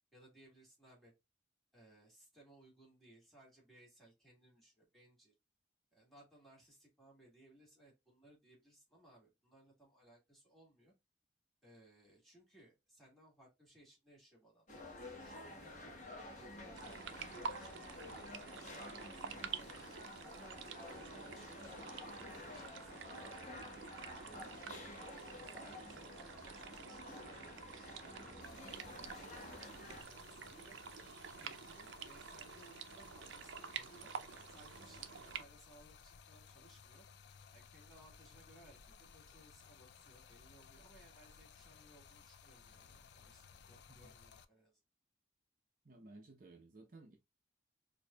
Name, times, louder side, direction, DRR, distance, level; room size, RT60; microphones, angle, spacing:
voice 1, 0.1-1.1 1.7-5.3 5.9-10.9 11.6-15.9 16.3-18.3 18.5-19.8 20.3-23.6 24.2-24.8 25.3-30.8 31.3-34.1 34.5-37.1 37.5-44.8, right 1 dB, ahead, 2.0 m, -63 dB
sound 1, 14.7-30.0, left 1 dB, 40° left, 1.1 m, -51 dB
sound 2, 16.8-35.4, right 6 dB, 85° right, 0.5 m, -49 dB
Stream, 28.4-44.4, left 6 dB, 65° left, 0.4 m, -60 dB
voice 2, 45.8-47.2, right 2 dB, 45° right, 0.7 m, -57 dB
4.6 x 2.6 x 2.2 m
head